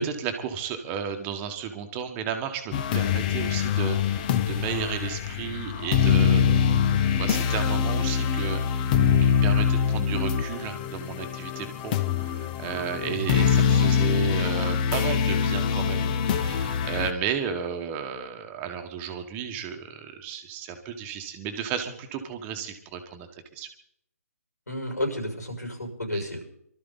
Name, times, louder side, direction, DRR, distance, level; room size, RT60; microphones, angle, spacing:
voice 1, 0.0-6.4 7.2-8.9 9.2-23.3 23.5-23.7 26.1-26.2, right 7 dB, 20° right, 5 dB, 1.5 m, -33 dB
sound 1, 2.7-17.1, left 7 dB, 30° left, 1.0 m, -24 dB
voice 2, 13.0-13.4 24.7-26.5, left 1 dB, 85° left, 3 dB, 6.4 m, -32 dB
23.5 x 13.0 x 4.1 m, 0.72 s
figure-of-eight pair, 140°, 9 cm